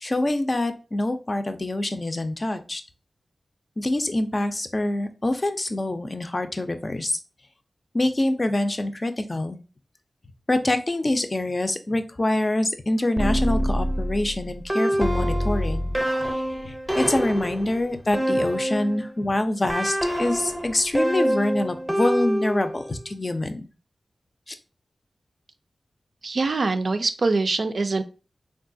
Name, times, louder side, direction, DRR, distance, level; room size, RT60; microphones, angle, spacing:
voice 1, 0.0-2.8 3.8-7.2 7.9-9.6 10.5-15.9 16.2-23.7 24.5-24.6, left 1 dB, 40° left, 7 dB, 0.4 m, -25 dB
sound 1, 13.2-19.1 19.7-22.9, equal, 5° right, 0.7 m, -25 dB
voice 2, 26.2-28.0, right 3 dB, 65° right, 9 dB, 0.3 m, -23 dB
3.5 x 2.3 x 2.6 m, 0.33 s
cardioid pair, 50°, 0 cm